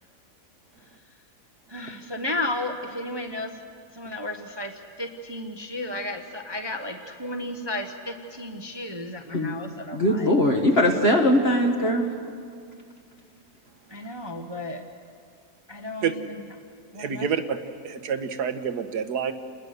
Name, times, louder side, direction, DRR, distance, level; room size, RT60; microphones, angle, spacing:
voice 1, 1.7-3.6 3.9-10.3 13.9-14.8 15.7-16.2 16.9-17.3, left 1 dB, 20° right, 4 dB, 1.0 m, -33 dB
voice 2, 9.9-12.1, left 1 dB, 40° left, 1 dB, 1.8 m, -21 dB
voice 3, 17.0-17.6 17.8-19.3, right 7 dB, 80° right, 10 dB, 1.7 m, -27 dB
29.0 x 20.5 x 6.7 m, 2.3 s
omnidirectional pair, 1.7 m